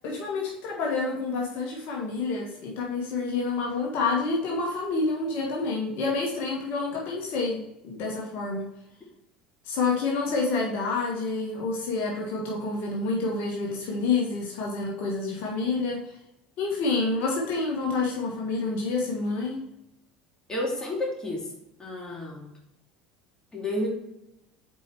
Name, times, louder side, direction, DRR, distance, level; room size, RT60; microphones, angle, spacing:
voice 1, 0.0-8.6 9.6-16.0 16.6-19.6, left 3 dB, 60° left, -2 dB, 1.4 m, -28 dB
voice 2, 20.5-21.5 21.8-22.5 23.5-23.9, left 1 dB, 20° left, -2 dB, 2.5 m, -31 dB
5.3 x 4.5 x 4.5 m, 0.85 s
hypercardioid pair, 75°, 4 cm